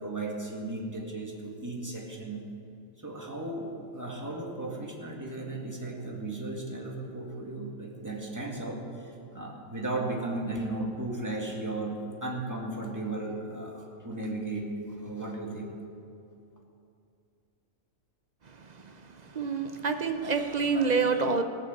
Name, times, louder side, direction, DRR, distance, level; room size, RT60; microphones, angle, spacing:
voice 1, 0.0-2.4 3.0-15.8, right 2 dB, 15° right, -1 dB, 1.9 m, -35 dB
voice 2, 19.3-21.4, right 4 dB, 40° right, 7 dB, 0.6 m, -27 dB
17.0 x 7.1 x 7.9 m, 2.5 s
omnidirectional pair, 1.4 m